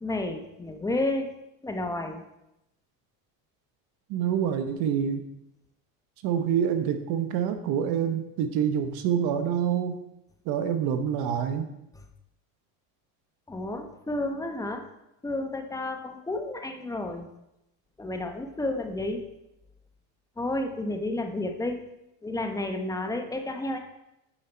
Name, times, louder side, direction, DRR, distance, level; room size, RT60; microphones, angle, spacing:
voice 1, 0.0-1.3 1.6-2.2 13.5-14.9 15.2-17.3 18.0-19.3 20.4-21.8 22.2-23.8, left 2 dB, 10° left, 5 dB, 0.9 m, -31 dB
voice 2, 4.1-5.2 6.2-10.0 10.5-11.7, right 8 dB, 65° right, 8 dB, 1.0 m, -26 dB
8.9 x 5.5 x 4.5 m, 0.86 s
cardioid pair, 125°, 40 cm